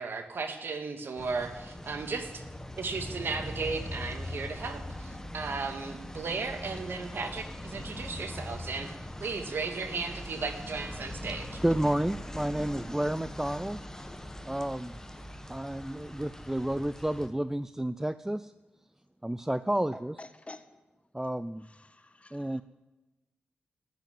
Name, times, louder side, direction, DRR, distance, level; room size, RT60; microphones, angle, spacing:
voice 1, 0.0-2.4 2.8-8.9 9.2-11.6, right 4 dB, 65° right, 6 dB, 1.8 m, -35 dB
sound 1, 1.2-17.3, left 1 dB, 15° left, 1.5 m, -41 dB
voice 2, 11.6-13.8 14.5-15.0 15.5-18.5 19.2-20.2 21.1-21.7 22.3-22.6, right 1 dB, 10° right, 14 dB, 0.5 m, -31 dB
voice 3, 20.2-20.6 21.7-22.6, left 2 dB, 30° left, 10 dB, 1.3 m, -49 dB
11.0 x 10.0 x 9.2 m, 1.1 s
supercardioid pair, 45°, 4 cm